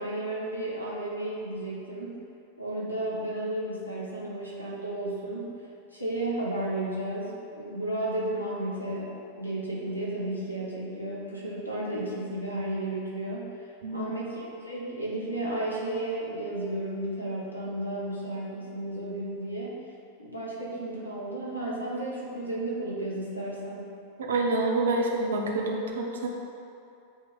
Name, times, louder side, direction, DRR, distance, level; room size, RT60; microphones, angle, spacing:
voice 1, 0.0-2.1 2.6-5.5 5.9-19.7 20.2-23.9, right 1 dB, 85° left, -5 dB, 1.3 m, -33 dB
voice 2, 24.3-26.3, right 2 dB, 65° right, -1 dB, 0.8 m, -27 dB
8.5 x 3.0 x 4.1 m, 2.6 s
figure-of-eight pair, 90°, 0 cm